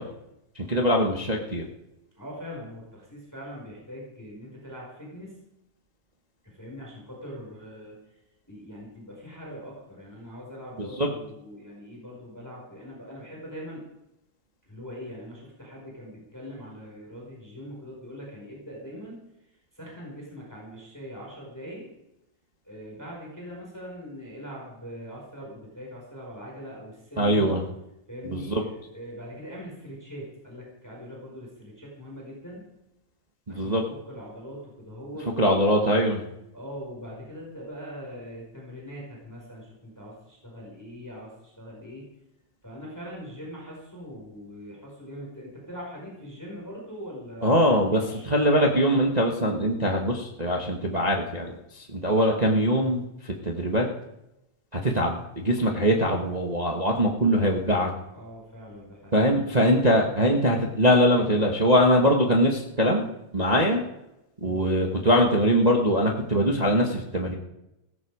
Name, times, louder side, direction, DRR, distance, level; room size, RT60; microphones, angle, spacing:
voice 1, 0.6-1.6 10.8-11.1 27.2-27.6 28.3-28.6 33.5-33.8 35.4-36.2 47.4-48.0 48.3-53.8 54.7-57.9 59.1-63.0 63.3-63.8 64.4-67.3, equal, 45° right, 1 dB, 0.5 m, -22 dB
voice 2, 2.1-5.4 6.4-7.9 8.5-13.8 14.6-19.2 19.7-21.8 22.6-27.5 28.1-32.6 33.5-35.8 36.5-42.0 42.6-48.3 58.1-60.0 64.4-64.6, equal, 5° left, -3 dB, 5.0 m, -42 dB
16.5 x 14.0 x 5.0 m, 0.88 s
omnidirectional pair, 3.4 m